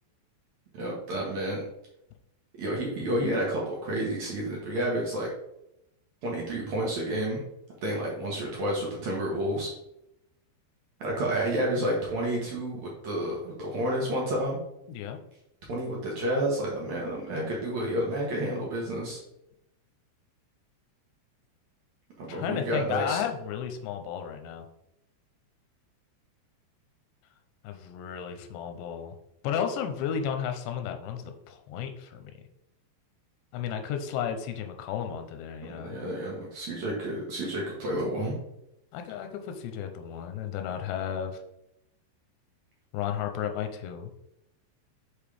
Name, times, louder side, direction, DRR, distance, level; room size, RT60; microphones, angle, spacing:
voice 1, 0.7-1.6 2.6-5.3 6.2-7.4 7.8-9.7 11.0-14.6 15.7-19.2 22.2-23.2 35.7-38.3, right 1 dB, 65° right, -3 dB, 1.8 m, -30 dB
voice 2, 14.9-15.2 22.3-24.6 27.6-29.2 29.4-32.3 33.5-36.0 38.9-41.4 42.9-44.1, left 8 dB, 90° left, 6 dB, 2.9 m, -33 dB
6.8 x 5.7 x 3.4 m, 0.83 s
omnidirectional pair, 5.0 m